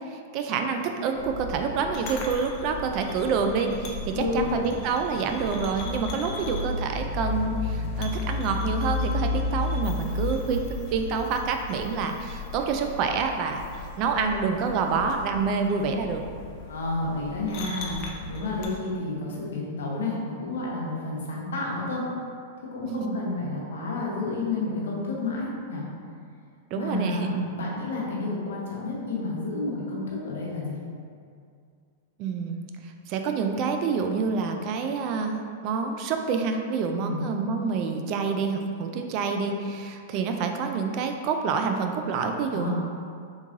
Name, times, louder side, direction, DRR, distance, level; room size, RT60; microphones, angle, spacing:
voice 1, 0.0-10.7 10.9-13.6 14.0-16.2 22.9-23.2 26.7-27.4 32.2-42.7, right 5 dB, 45° right, 5 dB, 0.3 m, -27 dB
sound 1, 1.2-18.7, left 2 dB, 45° left, 0.5 m, -34 dB
voice 2, 4.1-4.6 16.6-22.0 22.7-25.8 26.8-30.8 37.0-37.2 42.5-42.7, left 2 dB, 80° left, -3 dB, 0.8 m, -30 dB
3.5 x 3.1 x 2.6 m, 2.3 s
hypercardioid pair, 120°, 0 cm